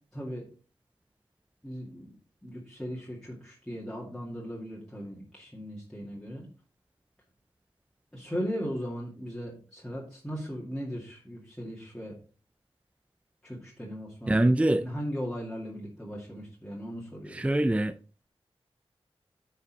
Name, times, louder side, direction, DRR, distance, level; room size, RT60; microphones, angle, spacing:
voice 1, 0.1-0.5 1.6-2.2 2.4-6.5 8.1-12.2 13.4-14.5 14.8-17.4, equal, 5° left, 2.3 m, -38 dB
voice 2, 14.3-14.9 17.3-17.9, right 1 dB, 10° right, 0.4 m, -24 dB
9.6 x 5.5 x 4.1 m
wide cardioid pair, 95°, 10 cm